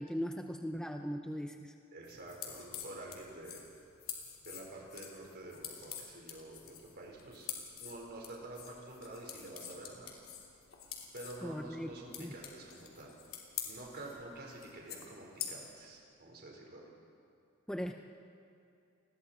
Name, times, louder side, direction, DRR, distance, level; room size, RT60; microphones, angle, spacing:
voice 1, 0.0-1.7 11.4-11.9 12.2-12.4 17.7-17.9, equal, 5° left, 4 dB, 0.6 m, -38 dB
voice 2, 1.9-3.6 4.4-7.5 7.8-10.2 11.1-13.1 13.6-16.8, right 2 dB, 50° right, -1 dB, 4.5 m, -48 dB
sound 1, 2.0-15.9, left 8 dB, 75° left, 3.2 m, -47 dB
29.5 x 21.0 x 4.4 m, 2.5 s
head